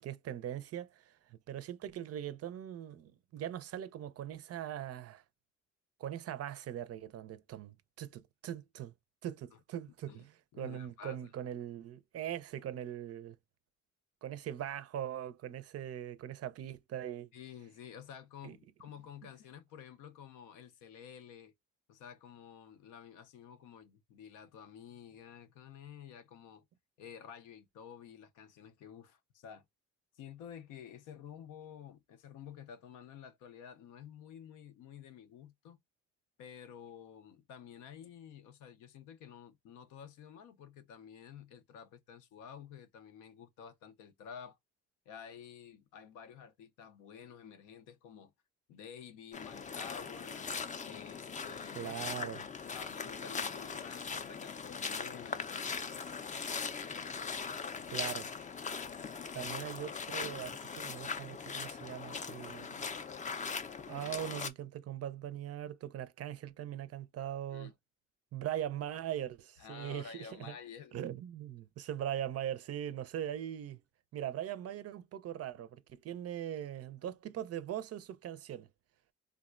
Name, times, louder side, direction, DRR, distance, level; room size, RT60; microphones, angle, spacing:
voice 1, 0.0-5.2 6.0-8.9 9.2-10.3 10.6-13.4 14.2-17.3 18.4-18.6 51.7-52.5 57.9-58.3 59.3-62.8 63.9-67.7 68.3-70.5 70.9-73.8 74.1-78.7, right 11 dB, 55° right, 0.4 m, -41 dB
voice 2, 10.5-11.3 17.3-21.5 21.9-26.6 27.0-29.6 30.1-35.8 36.4-44.6 45.1-48.3 48.7-52.0 52.7-55.5 67.5-67.7 69.6-71.0, left 8 dB, 90° left, 0.6 m, -51 dB
sound 1, 49.3-64.5, left 5 dB, 25° left, 0.4 m, -40 dB
3.4 x 2.1 x 2.3 m
cardioid pair, 90°, 30 cm